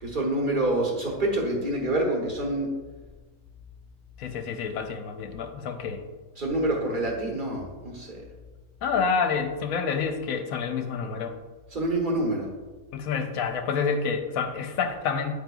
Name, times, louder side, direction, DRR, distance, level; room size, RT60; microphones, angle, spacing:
voice 1, 0.0-2.7 6.4-8.2 11.7-12.5, right 1 dB, 35° right, -1 dB, 1.1 m, -27 dB
voice 2, 4.2-6.0 8.8-11.3 12.9-15.3, left 5 dB, 70° left, 6 dB, 1.0 m, -28 dB
9.2 x 4.9 x 2.3 m, 1.3 s
omnidirectional pair, 1.6 m